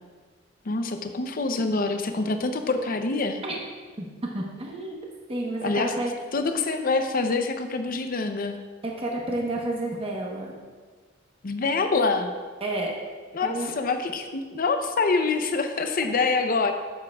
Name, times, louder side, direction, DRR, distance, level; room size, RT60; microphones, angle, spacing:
voice 1, 0.6-3.4 5.6-5.9 6.3-8.6 11.4-12.3 13.3-16.7, left 3 dB, 45° left, 7 dB, 0.6 m, -25 dB
voice 2, 4.3-5.0 5.3-6.1 8.8-10.5 12.6-12.9 13.4-13.7, right 2 dB, 30° right, -1 dB, 1.0 m, -30 dB
9.7 x 7.4 x 2.3 m, 1.5 s
head